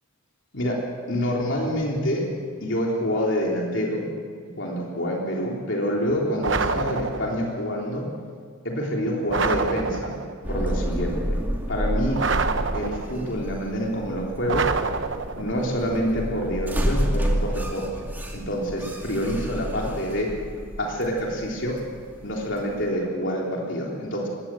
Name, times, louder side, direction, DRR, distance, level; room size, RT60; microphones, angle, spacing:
voice 1, 1.1-2.2 2.6-4.1 4.6-8.0 8.6-10.1 10.5-11.4 11.7-12.2 12.7-14.7 15.3-17.9 18.3-20.3 20.8-21.8 22.2-24.3, equal, 60° left, -2 dB, 3.6 m, -27 dB
sound 1, 6.4-7.5 9.3-10.4 12.2-13.3 14.5-15.6, right 4 dB, 60° right, 1.0 m, -27 dB
sound 2, 10.4-22.9, equal, 10° right, 2.3 m, -30 dB
21.0 x 17.5 x 7.8 m, 2.1 s
head